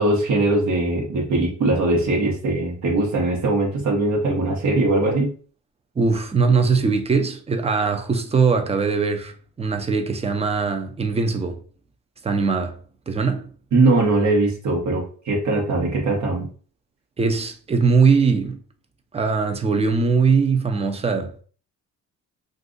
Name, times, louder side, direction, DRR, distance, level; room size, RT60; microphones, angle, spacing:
voice 1, 0.0-5.3 13.7-16.5, right 2 dB, 65° right, 1.0 m, -21 dB
voice 2, 6.0-11.6 12.2-12.8 13.1-13.5 17.2-18.6 19.1-21.4, right 5 dB, 20° right, 0.5 m, -21 dB
2.6 x 2.5 x 3.8 m
cardioid pair, 90°, 30 cm